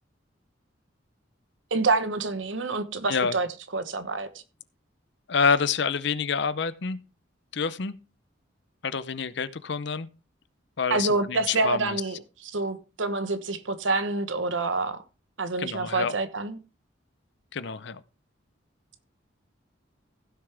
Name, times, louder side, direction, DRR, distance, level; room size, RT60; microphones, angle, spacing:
voice 1, 1.7-3.5 3.7-4.3 10.9-12.2 12.4-15.0 15.4-16.6, right 3 dB, 80° right, 1.2 m, -27 dB
voice 2, 5.3-7.0 7.5-7.9 8.8-10.1 10.8-12.0 15.6-16.1 17.5-18.0, left 5 dB, 65° left, 0.7 m, -27 dB
16.0 x 6.7 x 3.5 m
head